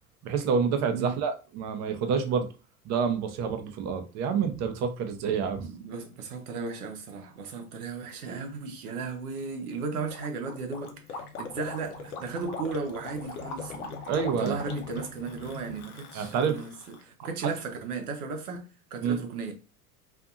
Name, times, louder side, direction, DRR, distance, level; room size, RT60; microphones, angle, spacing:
voice 1, 0.2-2.5 2.8-5.7 14.1-14.6 16.1-16.6 19.0-19.2, right 6 dB, 40° right, 0.6 m, -28 dB
voice 2, 5.6-14.0 14.4-19.5, right 4 dB, 75° right, 0.8 m, -35 dB
sound 1, 7.4-16.4, left 2 dB, 45° left, 1.2 m, -48 dB
Gurgling, 10.1-17.0, left 4 dB, 75° left, 0.7 m, -41 dB
2.6 x 2.6 x 2.3 m
hypercardioid pair, 85°, 44 cm